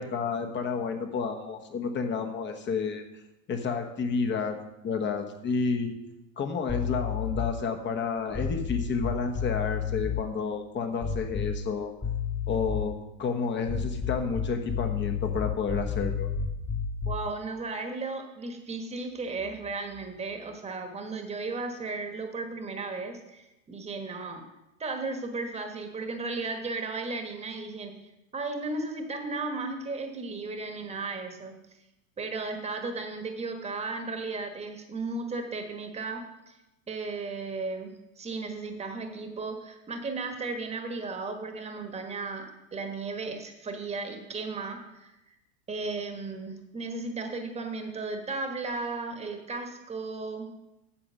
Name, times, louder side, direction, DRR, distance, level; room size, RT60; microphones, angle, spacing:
voice 1, 0.0-3.0 3.5-4.6 4.8-5.9 6.4-11.9 12.5-16.3, left 5 dB, 25° left, 5 dB, 1.2 m, -30 dB
sound 1, 6.7-7.6 8.3-10.2 11.0-11.7 12.0-13.0 13.6-17.3, left 6 dB, 10° left, 0.7 m, -31 dB
voice 2, 17.1-24.4 24.8-28.0 28.3-31.6 32.2-36.6 36.9-45.3 45.7-50.5, right 3 dB, 15° right, 5 dB, 1.4 m, -35 dB
8.7 x 6.9 x 6.4 m, 0.95 s
supercardioid pair, 120°, 40 cm